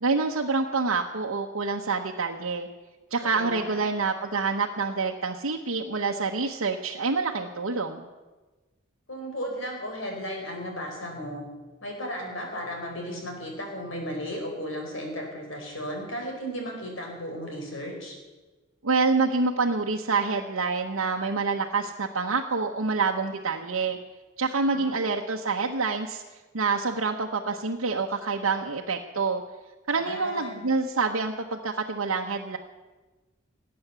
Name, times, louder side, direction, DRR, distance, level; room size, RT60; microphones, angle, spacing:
voice 1, 0.0-2.7 3.1-8.1 18.8-24.0 24.4-26.2 26.5-29.4 29.9-32.6, right 4 dB, 85° right, 0 dB, 0.9 m, -27 dB
voice 2, 3.2-3.8 9.1-11.4 11.8-18.2 24.7-25.0 29.9-30.6, equal, 70° left, 1 dB, 4.4 m, -35 dB
19.0 x 8.7 x 6.8 m, 1.2 s
head